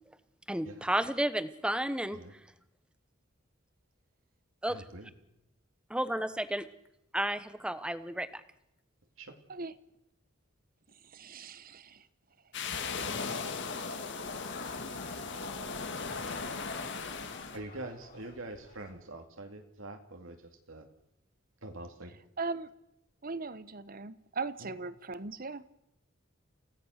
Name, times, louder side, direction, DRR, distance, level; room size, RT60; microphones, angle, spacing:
voice 1, 0.5-2.2 4.6-4.8 5.9-6.7 7.1-8.3, right 1 dB, 5° right, 1.1 m, -32 dB
voice 2, 4.7-5.1 9.2-9.3 17.5-20.4 20.7-20.9 21.6-22.2 24.6-24.7, right 2 dB, 80° right, 2.6 m, -44 dB
voice 3, 11.0-12.1 22.4-22.7 23.2-25.6, right 3 dB, 45° right, 1.0 m, -39 dB
sound 1, 12.5-17.6, left 4 dB, 60° left, 2.0 m, -37 dB
sound 2, 13.9-18.9, left 2 dB, 45° left, 5.9 m, -50 dB
28.5 x 17.0 x 6.6 m
head